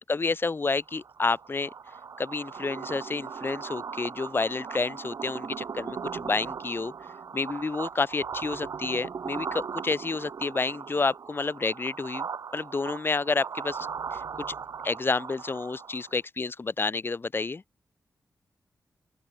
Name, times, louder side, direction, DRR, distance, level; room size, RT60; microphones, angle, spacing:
voice 1, 0.1-1.7 2.2-6.9 7.3-12.3 12.5-14.2 14.5-14.6 14.8-17.6, left 4 dB, 35° left, 2.0 m, -29 dB
sound 1, 0.8-16.2, right 6 dB, 65° right, 1.6 m, -38 dB
open air
wide cardioid pair, 120°, 6 cm